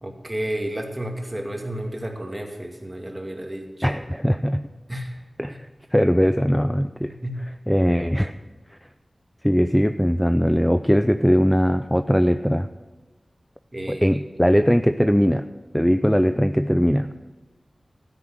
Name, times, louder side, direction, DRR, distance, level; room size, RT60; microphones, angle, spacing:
voice 1, 0.0-4.0 4.9-5.1 5.5-5.6 7.0-7.4 13.7-14.1, right 1 dB, 20° right, 1 dB, 2.5 m, -32 dB
voice 2, 3.8-4.7 5.4-7.1 7.7-8.3 9.4-12.7 13.9-15.4 15.7-17.1, equal, 5° left, 9 dB, 0.5 m, -20 dB
13.0 x 9.8 x 6.5 m, 1.2 s
wide cardioid pair, 60°, 0 cm